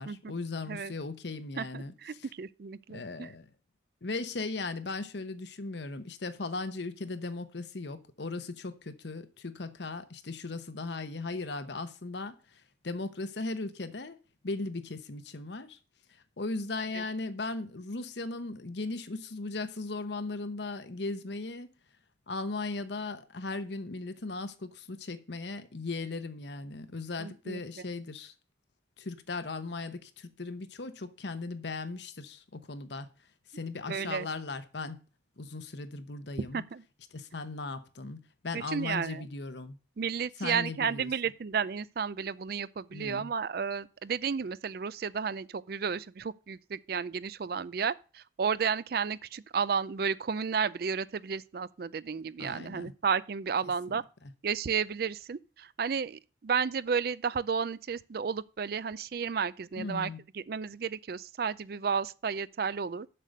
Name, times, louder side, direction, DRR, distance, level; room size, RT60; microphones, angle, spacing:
voice 1, 0.0-2.3 2.9-3.5 4.0-14.2 14.4-15.8 16.4-21.7 22.3-28.3 29.0-33.1 33.5-35.0 35.4-36.6 37.1-39.8 40.4-41.1 42.9-43.3 52.4-52.9 53.9-54.0 59.8-60.2, left 3 dB, 70° left, 0.9 m, -37 dB
voice 2, 1.6-3.3 16.9-17.0 27.2-27.6 33.9-34.3 36.5-36.8 38.5-39.3 40.0-54.0 54.4-63.1, right 6 dB, 55° right, 0.4 m, -32 dB
7.6 x 6.6 x 6.5 m
head